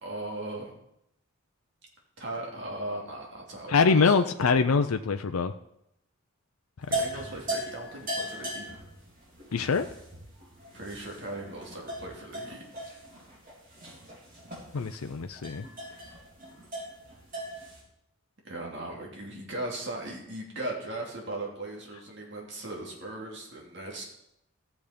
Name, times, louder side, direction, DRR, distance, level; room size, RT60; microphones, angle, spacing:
voice 1, 0.0-0.7 2.2-4.1 6.9-8.7 10.7-12.6 18.4-24.0, right 2 dB, 55° right, -1 dB, 2.7 m, -38 dB
voice 2, 3.7-5.5 9.5-9.9 14.7-15.6, left 5 dB, 80° left, 7 dB, 0.5 m, -24 dB
sound 1, 6.8-17.8, right 1 dB, 40° right, 3.5 m, -38 dB
14.5 x 7.2 x 5.1 m, 0.79 s
head